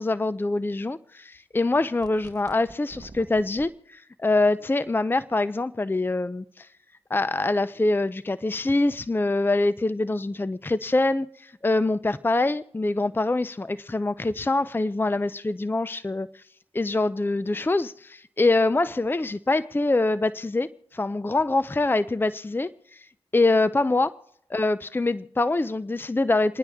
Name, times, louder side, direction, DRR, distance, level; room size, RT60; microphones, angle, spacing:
voice 1, 0.0-6.7 7.1-16.3 16.7-23.0 23.3-24.1 24.5-26.6, left 2 dB, 20° left, 0.5 m, -24 dB
sound 1, 2.0-3.7, right 3 dB, 35° right, 0.9 m, -47 dB
28.5 x 10.0 x 3.6 m
cardioid pair, 45°, 11 cm